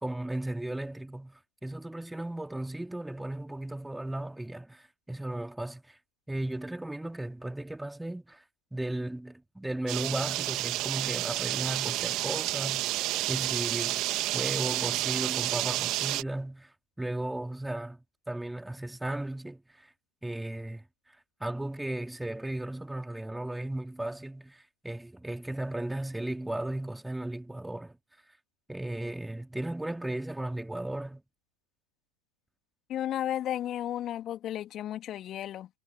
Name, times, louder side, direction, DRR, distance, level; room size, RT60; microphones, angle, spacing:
voice 1, 0.0-6.0 6.3-8.4 8.7-12.9 13.3-14.0 14.3-18.0 18.3-19.9 20.2-20.8 21.4-28.0 28.7-31.2, right 1 dB, 5° right, 3.1 m, -35 dB
sound 1, 9.9-16.2, right 18 dB, 40° right, 2.7 m, -30 dB
voice 2, 32.9-35.7, left 12 dB, 30° left, 3.4 m, -33 dB
figure-of-eight pair, 90°, 0 cm